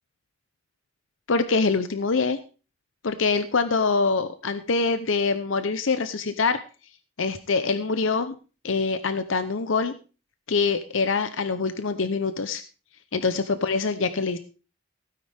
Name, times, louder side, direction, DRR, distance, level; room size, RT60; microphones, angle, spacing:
voice 1, 1.3-2.4 3.0-6.6 7.2-8.3 8.6-9.9 10.5-12.6 13.1-14.4, left 4 dB, 85° left, 11 dB, 0.8 m, -24 dB
16.5 x 9.5 x 3.5 m, 0.34 s
head